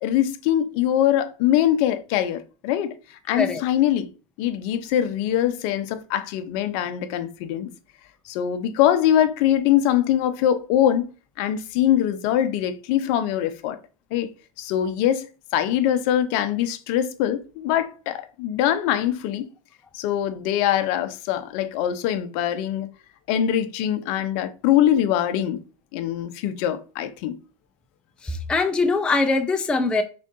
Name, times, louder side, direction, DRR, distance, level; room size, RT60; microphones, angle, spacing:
voice 1, 0.0-4.1 4.4-7.7 8.2-11.1 11.4-13.8 14.1-14.3 14.6-15.3 15.5-19.5 19.9-22.9 23.3-25.6 25.9-27.4, left 11 dB, 50° left, 0.6 m, -23 dB
voice 2, 28.2-30.0, left 3 dB, 5° left, 0.4 m, -22 dB
5.1 x 3.7 x 2.6 m
hypercardioid pair, 125°, 18 cm